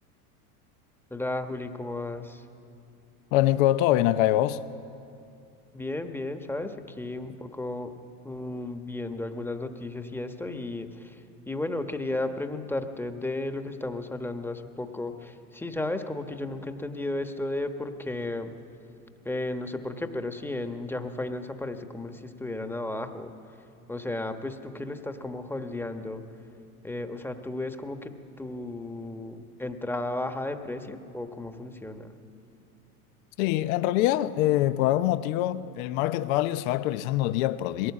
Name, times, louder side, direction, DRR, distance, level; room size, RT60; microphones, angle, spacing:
voice 1, 1.1-2.5 5.7-7.9 8.2-18.5 19.2-23.6 23.9-26.2 26.8-28.1 28.4-32.1, left 2 dB, 5° left, 1.2 m, -34 dB
voice 2, 3.3-4.6 33.4-37.9, left 14 dB, 65° left, 0.9 m, -24 dB
21.0 x 17.5 x 8.4 m
hypercardioid pair, 100°, 46 cm